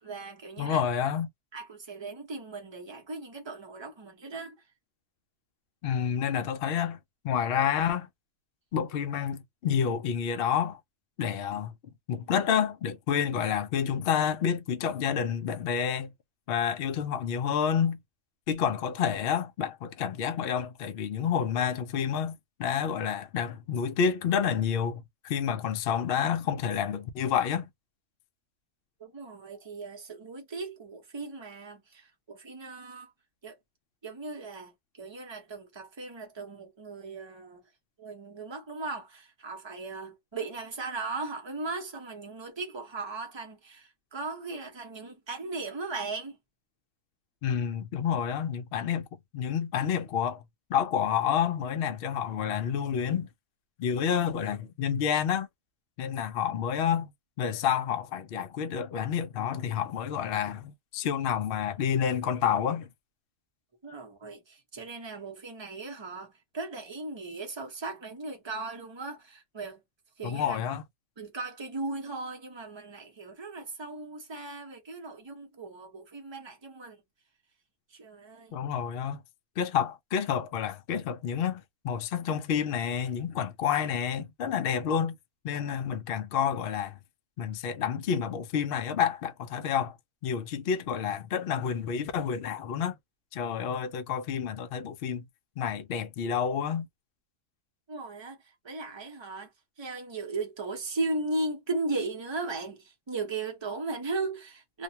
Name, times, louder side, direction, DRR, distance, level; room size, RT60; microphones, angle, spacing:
voice 1, 0.0-0.8 1.5-4.6 29.0-33.1 33.4-33.5 34.0-37.6 38.0-46.4 63.8-69.8 70.2-70.6 71.2-77.0 77.9-78.6 97.9-104.8, right 3 dB, 25° right, 0.7 m, -37 dB
voice 2, 0.6-1.3 5.8-7.0 7.2-8.1 8.7-10.8 11.2-11.7 12.1-16.1 16.5-18.0 18.5-27.7 47.4-49.1 49.3-50.4 50.7-53.3 53.8-55.5 56.0-57.1 57.4-62.9 70.2-70.8 78.5-79.2 79.6-85.2 85.4-87.0 87.4-90.0 90.2-92.9 93.3-95.3 95.6-96.9, left 8 dB, 65° left, 0.5 m, -29 dB
2.4 x 2.2 x 2.7 m
omnidirectional pair, 1.5 m